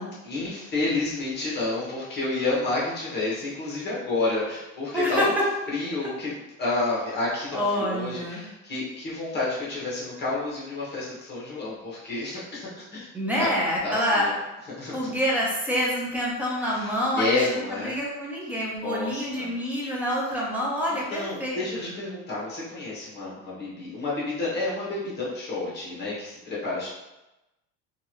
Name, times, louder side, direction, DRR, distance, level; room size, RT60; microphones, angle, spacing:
voice 1, 0.2-5.3 5.7-6.3 6.6-13.0 13.4-13.5 13.8-14.3 14.8-15.1 16.7-17.9 18.8-19.5 21.1-26.9, left 2 dB, 30° left, -6 dB, 1.2 m, -30 dB
voice 2, 4.9-5.4 6.0-6.1 7.5-8.5 13.1-14.3 14.9-21.9, equal, 5° right, -5 dB, 0.8 m, -27 dB
3.0 x 2.5 x 3.0 m, 0.97 s
cardioid pair, 140°, 33 cm